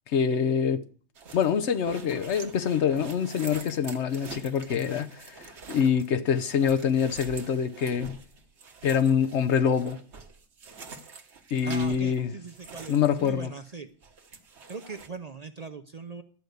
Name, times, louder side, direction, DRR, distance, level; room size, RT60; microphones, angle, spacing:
voice 1, 0.1-0.8 1.3-8.2 8.8-10.0 11.5-12.3 12.9-13.5, left 7 dB, 65° left, 1.0 m, -25 dB
sound 1, 1.1-13.8 14.0-15.1, right 4 dB, 65° right, 1.4 m, -46 dB
voice 2, 11.6-13.9 14.7-16.2, right 4 dB, 40° right, 0.6 m, -40 dB
12.0 x 5.1 x 7.9 m
omnidirectional pair, 1.3 m